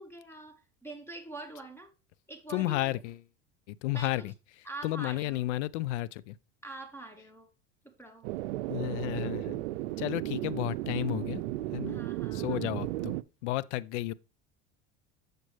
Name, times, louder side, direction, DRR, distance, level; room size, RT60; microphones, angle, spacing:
voice 1, 0.0-1.9 2.3-2.9 3.9-4.2 4.6-5.4 6.6-7.5 7.8-8.3 11.8-12.7, right 2 dB, 5° left, 1.2 m, -45 dB
voice 2, 2.5-3.2 3.7-4.3 4.8-6.4 8.7-9.6 10.0-11.4 11.7-12.0 12.3-13.2 13.4-14.1, left 16 dB, 80° left, 0.6 m, -32 dB
sound 1, 8.2-13.2, right 17 dB, 85° right, 0.5 m, -34 dB
7.4 x 6.7 x 3.1 m
supercardioid pair, 95°, 35 cm